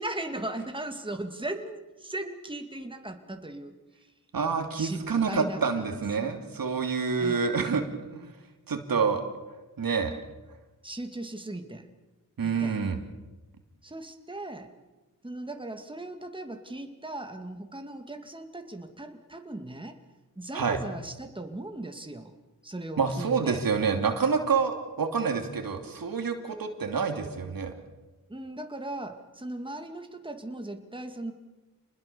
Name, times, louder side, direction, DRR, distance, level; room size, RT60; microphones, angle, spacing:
voice 1, 0.0-3.8 4.7-5.8 6.2-6.4 7.2-7.5 10.8-11.9 12.4-12.8 13.8-14.7 15.2-20.0 20.4-22.3 22.6-23.7 28.3-31.3, right 1 dB, 15° right, 5 dB, 2.5 m, -38 dB
voice 2, 4.3-7.8 8.1-8.4 8.7-9.2 9.8-10.1 12.4-13.0 20.5-20.8 23.0-27.7, right 5 dB, 75° right, 5 dB, 2.9 m, -27 dB
28.0 x 20.5 x 7.0 m, 1.1 s
cardioid pair, 65°, 35 cm